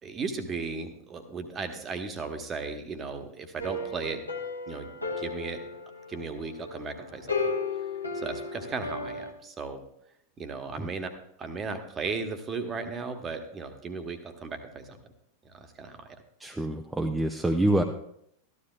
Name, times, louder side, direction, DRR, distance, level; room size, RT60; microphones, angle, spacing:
voice 1, 0.0-4.2 4.7-4.9 5.2-5.6 6.1-7.4 8.1-9.8 10.4-11.1 11.4-15.0 15.4-16.2, right 4 dB, 25° right, 7 dB, 1.2 m, -36 dB
sound 1, 3.6-9.3, left 3 dB, 85° left, 1.2 m, -34 dB
voice 2, 16.4-17.8, right 1 dB, 10° right, 3 dB, 0.6 m, -26 dB
14.0 x 12.0 x 2.4 m, 0.73 s
figure-of-eight pair, 90°, 0 cm